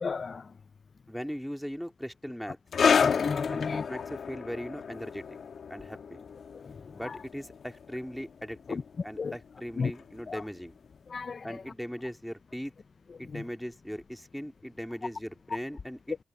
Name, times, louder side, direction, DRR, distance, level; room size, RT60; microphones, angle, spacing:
voice 1, 0.0-0.5 3.0-4.0 6.5-6.7 7.0-7.2 8.7-8.8 9.2-9.3 9.8-9.9 10.3-10.4 11.1-11.6 13.3-13.4, left 5 dB, 50° left, 0.4 m, -34 dB
voice 2, 1.1-2.6 3.5-5.3 5.7-6.2 6.9-10.7 11.4-12.7 13.2-16.2, equal, ahead, 2.1 m, -39 dB
sound 1, 2.7-9.7 10.0-10.2 10.9-11.0, left 6 dB, 70° left, 1.2 m, -30 dB
cardioid pair, 75°, 0 cm